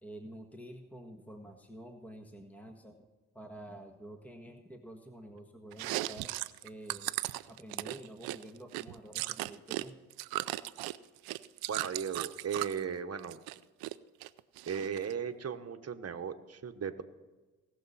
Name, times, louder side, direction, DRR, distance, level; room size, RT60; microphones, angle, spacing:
voice 1, 0.0-3.0 3.3-6.3 6.6-7.2 7.5-10.0, right 1 dB, 5° left, 4 dB, 1.6 m, -49 dB
Chewing mastication, 5.7-9.8 10.1-12.8 13.2-13.9 14.2-15.1, right 18 dB, 80° right, 0.5 m, -37 dB
voice 2, 11.7-13.4 14.7-17.0, right 7 dB, 40° right, 8 dB, 1.2 m, -36 dB
19.5 x 7.0 x 4.2 m, 1.2 s
hypercardioid pair, 50°, 37 cm